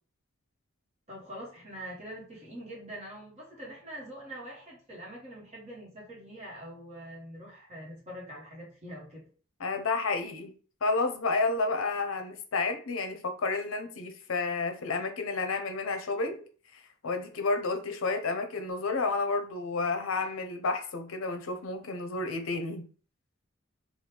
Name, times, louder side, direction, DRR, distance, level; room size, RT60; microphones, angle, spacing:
voice 1, 1.1-9.3, equal, 30° right, -4 dB, 1.1 m, -44 dB
voice 2, 9.6-10.5 10.8-16.4 16.7-22.9, left 3 dB, 75° left, 7 dB, 0.6 m, -31 dB
3.0 x 2.3 x 3.3 m, 0.41 s
head